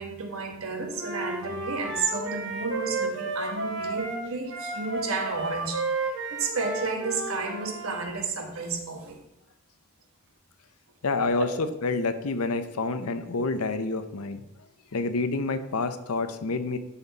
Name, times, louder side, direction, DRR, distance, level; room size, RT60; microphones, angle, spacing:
voice 1, 0.0-9.2, right 4 dB, 70° right, 3 dB, 1.4 m, -32 dB
Wind instrument woodwind instrument, 0.9-8.0, right 3 dB, 50° right, 1.7 m, -32 dB
voice 2, 11.0-11.5 11.8-14.4 14.9-16.8, left 3 dB, 85° left, 10 dB, 0.7 m, -28 dB
12.5 x 4.4 x 4.0 m, 0.92 s
head